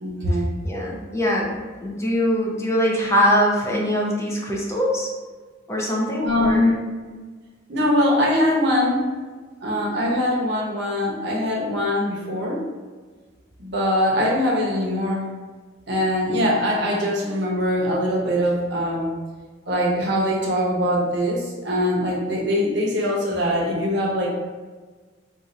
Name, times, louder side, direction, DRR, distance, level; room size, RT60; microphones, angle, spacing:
voice 1, 0.0-0.5 6.2-6.8 7.7-9.0 9.6-12.6 13.6-15.3 15.9-19.1 19.7-24.4, left 1 dB, 55° right, -3 dB, 0.8 m, -22 dB
voice 2, 0.6-5.1 5.7-6.8, equal, 15° left, -3 dB, 0.5 m, -22 dB
2.5 x 2.5 x 4.1 m, 1.4 s
head